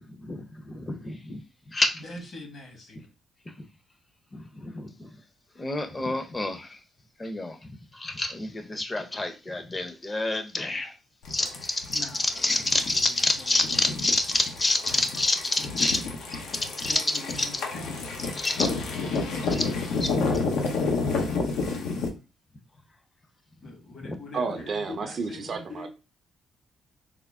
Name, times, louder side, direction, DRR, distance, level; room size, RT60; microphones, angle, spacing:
voice 1, 0.1-1.4 1.7-2.0 3.6-3.7 4.3-5.1 5.6-6.8 7.2-10.9 11.3-16.0 16.8-17.0 18.4-18.7 19.5-19.7 20.0-20.1, left 2 dB, 25° left, 0.6 m, -28 dB
voice 2, 1.9-3.1 11.9-13.8 14.9-15.0 16.9-18.1 23.6-25.9, left 2 dB, 55° left, 1.4 m, -43 dB
sound 1, 11.2-22.1, left 4 dB, 85° left, 0.7 m, -30 dB
voice 3, 24.3-25.9, right 4 dB, 45° right, 0.5 m, -31 dB
3.5 x 2.0 x 3.5 m
cardioid pair, 90°, 0 cm